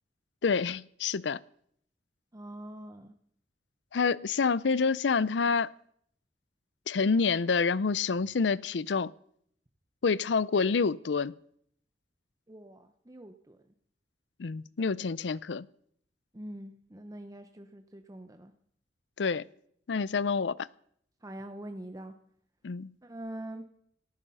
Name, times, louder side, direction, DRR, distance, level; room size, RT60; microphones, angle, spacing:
voice 1, 0.4-1.4 3.9-5.7 6.9-9.1 10.0-11.3 14.4-15.7 19.2-19.4 19.9-20.6 22.6-22.9, left 5 dB, 90° left, 0.5 m, -27 dB
voice 2, 2.3-3.1 12.5-13.6 16.3-18.5 21.2-22.1 23.0-23.6, right 1 dB, 20° right, 0.8 m, -44 dB
18.5 x 13.5 x 5.6 m
head